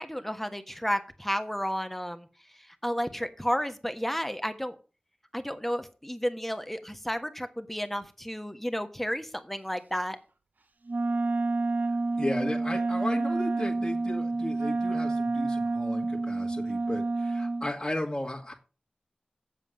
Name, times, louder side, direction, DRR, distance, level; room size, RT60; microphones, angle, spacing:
voice 1, 0.0-2.3 2.8-4.7 5.3-10.2, equal, 5° left, 8 dB, 1.3 m, -32 dB
Wind instrument woodwind instrument, 10.9-17.7, right 3 dB, 75° right, 1.0 m, -29 dB
voice 2, 12.2-18.5, left 1 dB, 25° left, -2 dB, 2.0 m, -35 dB
7.6 x 7.5 x 6.4 m, 0.34 s
wide cardioid pair, 50°, 3 cm